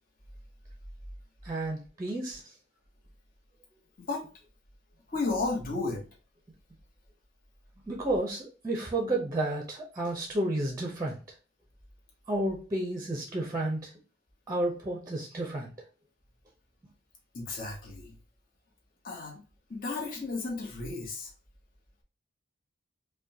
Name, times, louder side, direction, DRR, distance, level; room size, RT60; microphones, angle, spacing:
voice 1, 1.4-2.5 7.9-11.2 12.3-13.9 14.5-15.7, right 1 dB, 20° right, 1 dB, 0.6 m, -31 dB
voice 2, 5.1-6.0 17.3-18.2 19.0-19.4 19.7-21.3, left 3 dB, 50° left, -1 dB, 1.0 m, -33 dB
5.0 x 2.2 x 2.7 m, 0.35 s
head